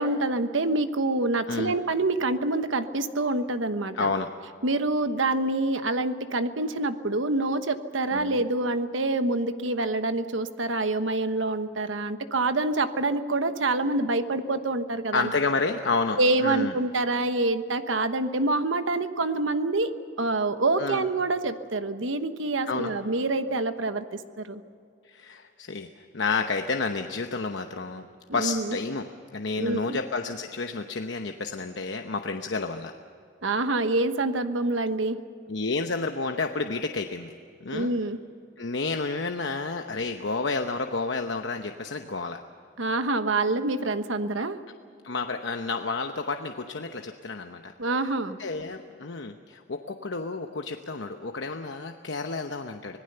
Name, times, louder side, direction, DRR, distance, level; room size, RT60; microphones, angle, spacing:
voice 1, 0.0-4.1 4.6-15.3 16.2-19.9 20.2-24.6 28.3-28.8 29.6-30.0 33.4-35.2 37.7-38.2 42.8-44.6 47.8-48.4, right 2 dB, 85° right, 10 dB, 1.2 m, -26 dB
voice 2, 3.9-4.3 8.1-8.3 15.1-16.7 20.8-21.0 22.7-22.9 25.1-25.9 26.1-28.1 28.3-29.1 29.3-32.9 35.5-37.3 37.6-37.9 38.6-42.4 45.0-47.7 48.4-53.0, left 4 dB, 70° left, 5 dB, 0.9 m, -30 dB
26.0 x 19.0 x 6.8 m, 2.4 s
head